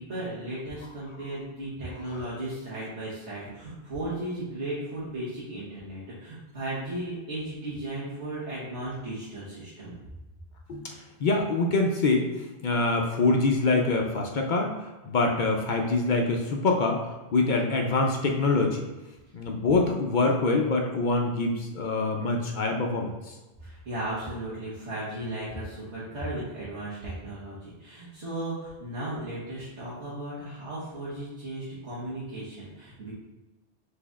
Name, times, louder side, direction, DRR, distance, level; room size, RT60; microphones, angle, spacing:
voice 1, 0.0-9.9 23.6-33.1, right 1 dB, 80° right, -11 dB, 1.6 m, -36 dB
voice 2, 11.2-12.3 12.6-18.8 19.3-23.3, left 3 dB, 55° left, 1 dB, 0.6 m, -25 dB
5.9 x 3.3 x 2.4 m, 1.1 s
omnidirectional pair, 1.2 m